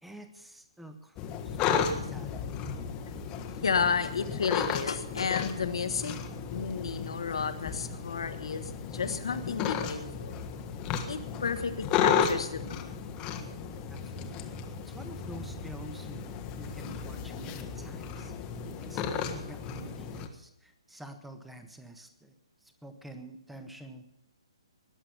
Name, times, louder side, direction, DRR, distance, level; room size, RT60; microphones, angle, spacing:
voice 1, 0.0-2.5 13.9-14.5 14.9-18.3 18.8-22.3 22.6-24.0, right 1 dB, 5° right, 8 dB, 1.3 m, -47 dB
sound 1, 1.2-20.3, left 7 dB, 25° left, 1.3 m, -34 dB
voice 2, 3.6-6.1 6.5-10.4 11.1-12.9, left 6 dB, 65° left, 9 dB, 1.4 m, -32 dB
20.0 x 7.6 x 7.1 m, 0.81 s
figure-of-eight pair, 130°, 3 cm